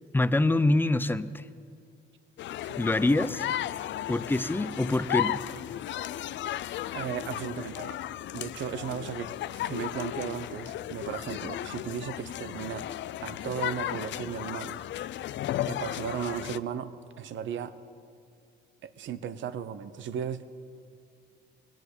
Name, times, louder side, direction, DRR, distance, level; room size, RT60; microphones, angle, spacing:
voice 1, 0.1-1.4 2.8-3.4 4.1-5.4, left 2 dB, 10° left, 14 dB, 0.5 m, -25 dB
sound 1, 2.4-16.6, left 12 dB, 70° left, 0.4 m, -35 dB
voice 2, 6.9-8.0 8.3-9.3 9.6-12.9 13.2-14.8 15.6-17.7 18.8-20.5, right 8 dB, 70° right, 13 dB, 0.8 m, -36 dB
18.5 x 9.1 x 8.1 m, 2.4 s
cardioid pair, 90°, 20 cm